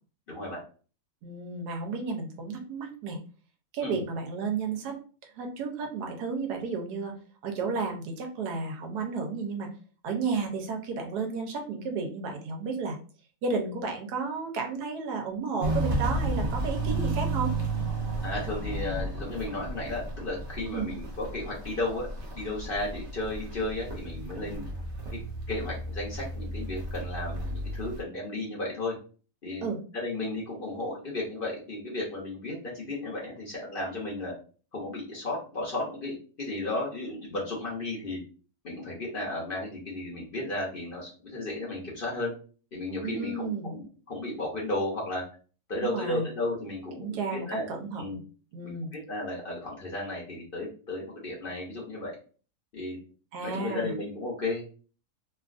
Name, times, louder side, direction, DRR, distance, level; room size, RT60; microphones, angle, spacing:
voice 1, 0.3-0.6 3.8-4.0 18.2-22.1 22.3-24.7 25.5-29.0 29.4-29.7 29.9-34.3 34.7-38.2 38.6-42.3 42.7-45.2 45.7-47.7 48.0-48.2 48.6-48.7 49.1-52.1 52.7-53.0 53.4-54.6, left 2 dB, 45° left, -4 dB, 0.8 m, -34 dB
voice 2, 1.2-3.2 3.7-7.1 7.4-9.7 10.0-13.0 13.4-17.5 20.7-20.9 29.6-29.8 43.0-43.7 45.7-46.3 47.0-48.2 48.5-48.9 53.3-53.9, right 4 dB, 85° right, 3 dB, 1.3 m, -32 dB
Walk footsteps, 15.6-28.0, right 2 dB, 45° right, 0.7 m, -33 dB
3.1 x 2.4 x 2.4 m, 0.38 s
omnidirectional pair, 1.7 m